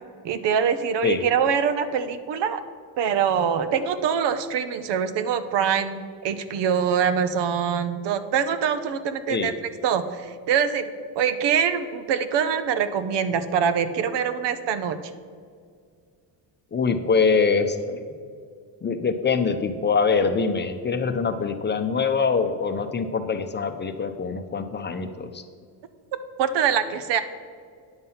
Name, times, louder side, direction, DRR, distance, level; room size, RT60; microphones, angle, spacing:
voice 1, 0.2-2.6 3.0-9.5 9.8-10.9 11.1-15.0 26.4-27.2, right 7 dB, 70° right, 12 dB, 0.9 m, -24 dB
voice 2, 16.7-18.0 18.8-25.4, left 5 dB, 25° left, 7 dB, 0.7 m, -24 dB
9.8 x 7.5 x 5.6 m, 2.1 s
cardioid pair, 130°, 44 cm